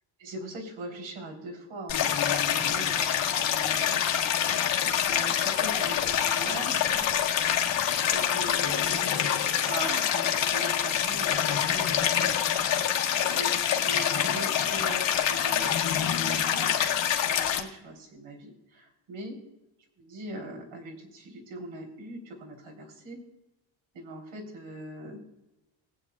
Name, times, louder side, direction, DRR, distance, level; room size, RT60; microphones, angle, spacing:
voice 1, 0.2-4.3 4.8-7.1 8.1-9.0 9.6-16.7 17.3-19.4 20.0-23.2 23.9-25.2, right 1 dB, 90° right, 0 dB, 3.6 m, -41 dB
Stream, 1.9-17.6, left 9 dB, 70° left, 1.5 m, -26 dB
21.0 x 8.5 x 2.3 m, 0.94 s
cardioid pair, 160°, 46 cm